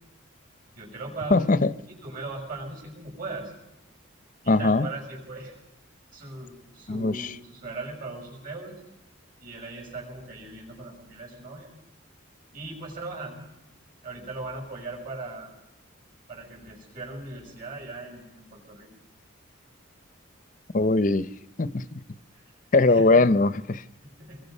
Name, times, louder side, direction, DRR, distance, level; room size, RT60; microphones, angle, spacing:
voice 1, 0.8-1.5 2.0-3.5 4.4-5.6 6.1-8.7 9.4-11.7 12.5-13.5 14.0-15.5 16.3-18.9 22.3-22.4 22.9-23.2 24.0-24.4, right 2 dB, 40° right, 6.8 m, -38 dB
voice 2, 1.3-1.7 4.5-4.9 6.9-7.3 20.7-21.3 21.6-22.0 22.7-23.8, left 3 dB, 40° left, 0.7 m, -21 dB
26.0 x 22.0 x 5.5 m
head